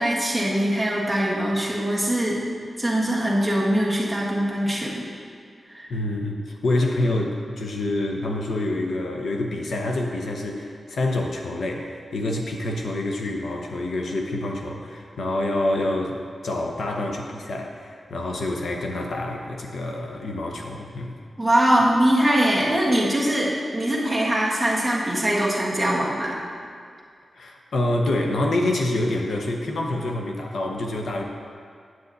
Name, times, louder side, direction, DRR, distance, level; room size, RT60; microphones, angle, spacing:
voice 1, 0.0-2.4 2.8-5.0 5.7-5.9 21.4-26.4, right 1 dB, 5° right, -6 dB, 1.5 m, -22 dB
voice 2, 5.9-21.2 27.4-31.2, left 1 dB, 75° left, 1 dB, 0.9 m, -27 dB
9.4 x 8.0 x 4.1 m, 2.2 s
wide cardioid pair, 160°, 0 cm